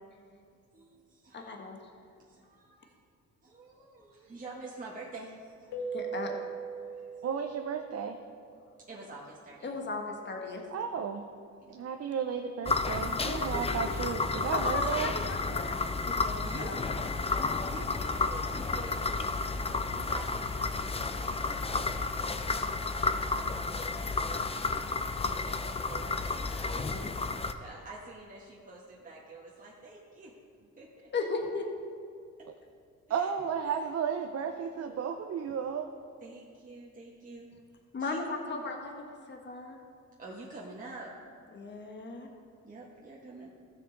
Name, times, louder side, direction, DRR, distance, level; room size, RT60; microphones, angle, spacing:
voice 1, 0.7-1.5 2.2-3.0 3.4-6.1 6.8-7.3 8.8-9.7 11.6-11.8 13.4-13.5 16.2-16.8 17.6-20.8 21.2-24.5 25.3-26.9 27.6-30.3 30.8-31.1 33.1-33.3 34.8-35.1 36.2-37.5 38.0-38.2 40.2-41.1 42.6-43.5, right 2 dB, 25° right, -4 dB, 1.4 m, -48 dB
voice 2, 1.3-1.8 5.9-6.3 9.6-10.6 13.2-14.0 14.5-15.8 16.1-16.8 26.6-27.1 31.1-31.7 37.9-39.8 41.5-42.3, left 3 dB, 35° left, 2 dB, 1.3 m, -36 dB
Keyboard (musical), 5.7-8.2, right 5 dB, 75° left, 0.9 m, -39 dB
voice 3, 7.2-8.2 10.7-11.2 11.7-15.1 33.1-35.9, right 7 dB, 55° right, 5 dB, 0.6 m, -33 dB
sound 1, 12.6-27.5, left 3 dB, 20° left, 0.5 m, -32 dB
15.0 x 6.6 x 3.9 m, 2.3 s
cardioid pair, 90°, 30 cm